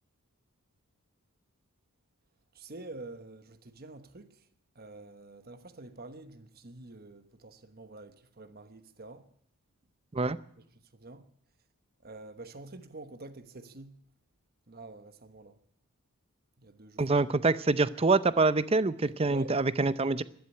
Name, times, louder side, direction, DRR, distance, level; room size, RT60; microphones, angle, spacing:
voice 1, 2.5-4.3 4.8-9.2 11.0-11.2 12.0-14.0 14.7-15.6 16.6-17.2 19.3-19.5, right 2 dB, 45° right, 1.1 m, -47 dB
voice 2, 17.0-20.2, right 3 dB, 25° right, 0.5 m, -25 dB
12.5 x 11.5 x 9.9 m
head